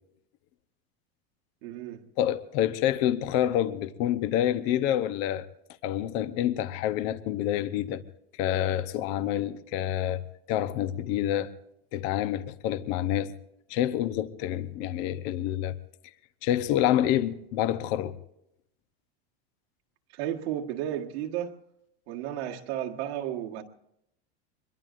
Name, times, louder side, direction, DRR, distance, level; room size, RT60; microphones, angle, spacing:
voice 1, 1.6-2.0 20.1-21.5 22.1-23.6, right 11 dB, 75° right, 1.7 m, -33 dB
voice 2, 2.2-5.5 5.8-8.0 8.4-10.2 10.5-11.5 11.9-13.3 13.7-15.8 16.4-18.2, left 12 dB, 55° left, 1.0 m, -27 dB
24.5 x 22.0 x 2.6 m
supercardioid pair, 135°, 32 cm